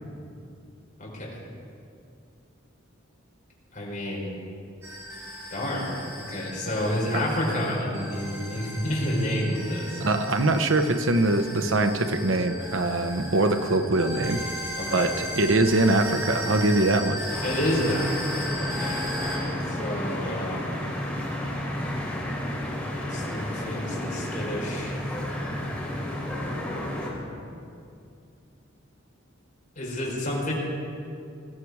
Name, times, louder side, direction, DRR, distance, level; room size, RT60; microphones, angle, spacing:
voice 1, 1.0-1.4 3.7-4.3 5.5-6.0 6.3-10.0 14.8-15.1 17.4-20.8 23.1-25.0 29.8-30.5, left 1 dB, 40° left, -4 dB, 4.4 m, -30 dB
sound 1, 4.8-19.4, equal, 15° right, 4.0 m, -36 dB
voice 2, 10.0-14.4 14.9-17.2, right 2 dB, 75° right, 7 dB, 1.0 m, -23 dB
sound 2, 17.3-27.1, left 1 dB, 5° left, 3.5 m, -31 dB
19.5 x 14.5 x 4.8 m, 2.5 s
head